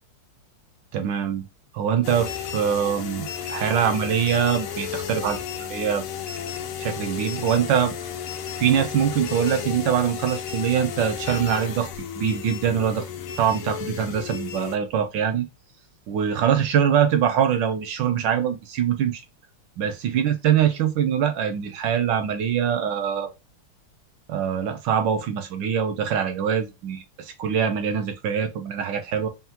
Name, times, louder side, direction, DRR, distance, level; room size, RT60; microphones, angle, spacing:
voice 1, 0.9-1.5 1.7-6.0 6.8-7.9 8.6-11.9 12.1-13.1 13.4-15.5 16.1-19.2 19.8-23.3 24.3-29.3, right 8 dB, 70° right, 1.2 m, -23 dB
sound 1, 2.0-14.8, left 8 dB, 85° left, 1.6 m, -33 dB
5.6 x 2.3 x 2.8 m
omnidirectional pair, 2.4 m